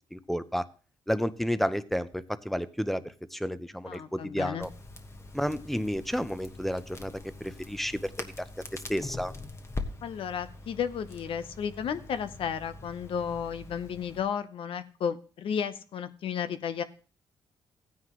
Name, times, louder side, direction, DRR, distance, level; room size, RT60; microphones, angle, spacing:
voice 1, 0.1-0.6 1.1-3.0 3.3-4.7 5.3-8.1 8.9-9.3, equal, ahead, 14 dB, 0.7 m, -31 dB
voice 2, 3.9-4.7 10.0-16.8, left 7 dB, 70° left, 12 dB, 0.8 m, -33 dB
Crackle, 4.6-14.2, left 3 dB, 30° left, 1.3 m, -43 dB
15.5 x 9.6 x 3.1 m, 0.37 s
cardioid pair, 85°, 9 cm